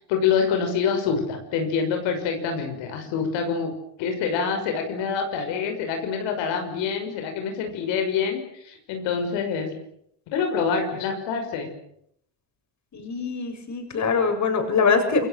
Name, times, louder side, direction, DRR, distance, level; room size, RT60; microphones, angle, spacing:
voice 1, 0.1-3.7 4.0-9.7 10.3-11.7, left 6 dB, 90° left, 4 dB, 6.2 m, -26 dB
voice 2, 12.9-15.3, left 4 dB, 40° left, 5 dB, 7.2 m, -23 dB
28.5 x 22.0 x 7.9 m, 0.73 s
cardioid pair, 120°, 43 cm